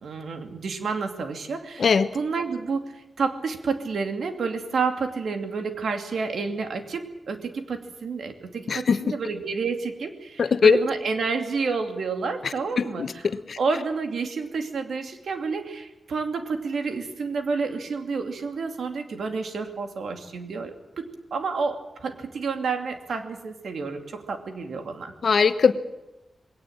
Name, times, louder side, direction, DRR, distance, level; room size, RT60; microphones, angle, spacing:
voice 1, 0.0-13.1 13.6-25.1, right 4 dB, 85° right, 6 dB, 2.6 m, -30 dB
voice 2, 1.8-2.1 8.7-9.0 10.4-10.8 12.8-13.6 25.2-25.7, left 5 dB, 65° left, 11 dB, 1.2 m, -20 dB
21.0 x 17.5 x 8.9 m, 0.97 s
wide cardioid pair, 140°, 0 cm